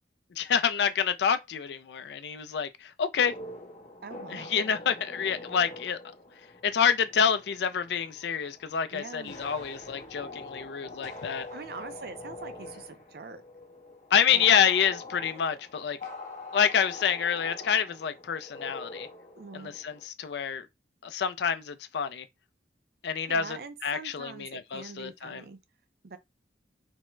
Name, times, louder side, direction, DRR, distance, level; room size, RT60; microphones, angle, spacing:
voice 1, 0.4-3.3 4.3-6.0 6.6-11.5 14.1-16.0 16.5-19.1 19.5-20.7 21.0-22.3 23.0-23.6 23.8-25.4, left 7 dB, 70° left, 0.4 m, -27 dB
sound 1, 3.1-20.0, left 2 dB, 45° left, 0.9 m, -44 dB
voice 2, 4.0-4.5 8.9-9.4 11.5-13.4 14.3-14.5 19.4-19.8 23.3-25.6 26.0-26.2, right 4 dB, 60° right, 0.5 m, -43 dB
3.4 x 2.1 x 3.1 m
head